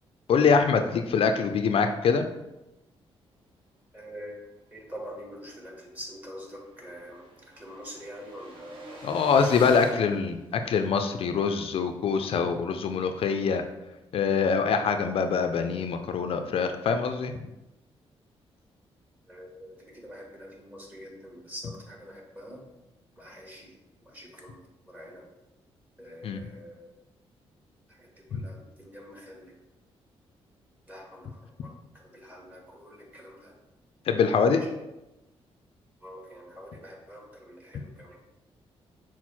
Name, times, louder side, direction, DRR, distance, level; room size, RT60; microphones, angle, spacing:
voice 1, 0.3-2.2 9.0-13.6 14.1-17.3 26.2-26.4 28.3-28.4 34.1-34.6, left 5 dB, 60° left, 7 dB, 0.4 m, -24 dB
voice 2, 3.9-4.4 4.7-9.0 9.5-10.0 19.3-22.6 23.2-23.7 24.0-24.6 24.9-25.2 26.0-26.9 27.9-29.5 30.9-33.6 34.5-34.7 36.0-38.2, equal, 15° right, -2 dB, 1.5 m, -45 dB
sound 1, 5.5-5.6 6.0-6.1 6.2-11.1, right 1 dB, 50° right, 1.4 m, -47 dB
6.0 x 2.0 x 4.3 m, 0.98 s
cardioid pair, 80°, 11 cm